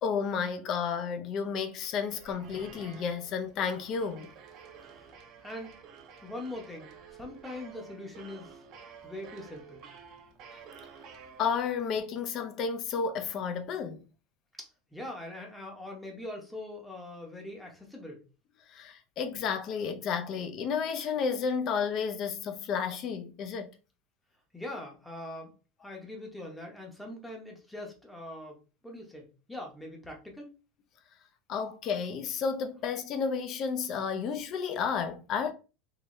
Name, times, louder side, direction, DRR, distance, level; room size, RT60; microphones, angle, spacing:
voice 1, 0.0-4.3 11.4-14.1 18.7-23.7 31.5-35.5, left 6 dB, 35° left, 0.5 m, -32 dB
sound 1, 1.5-12.0, right 6 dB, 35° right, 0.6 m, -51 dB
voice 2, 4.8-5.1 5.4-5.8 6.2-8.6 9.0-9.8 14.6-18.2 24.5-25.5 25.8-30.5, left 1 dB, 5° left, 0.8 m, -42 dB
3.8 x 2.6 x 3.1 m
supercardioid pair, 165°, 0 cm